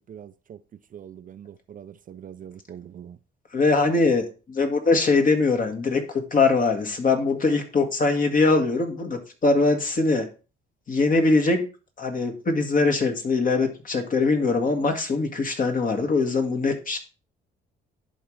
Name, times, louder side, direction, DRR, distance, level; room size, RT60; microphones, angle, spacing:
voice 1, 0.1-0.6 0.9-3.2, right 9 dB, 45° right, 0.4 m, -43 dB
voice 2, 3.5-10.3 10.9-11.7 12.0-17.0, left 3 dB, 45° left, 1.7 m, -22 dB
11.0 x 3.7 x 3.2 m
cardioid pair, 90°, 20 cm